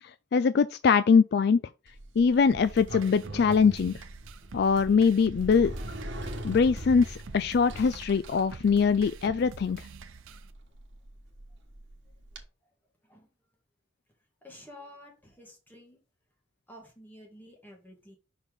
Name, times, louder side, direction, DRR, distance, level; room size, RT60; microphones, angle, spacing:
voice 1, 0.3-1.6 2.2-3.9 4.5-5.7 6.4-9.8, left 5 dB, 55° left, 0.3 m, -22 dB
Sliding door, 1.9-12.4, right 1 dB, 65° right, 1.4 m, -42 dB
sound 1, 2.5-10.5, right 5 dB, 90° right, 0.7 m, -47 dB
voice 2, 14.4-16.0 16.7-18.2, left 1 dB, 10° left, 2.1 m, -50 dB
5.8 x 4.4 x 5.2 m
head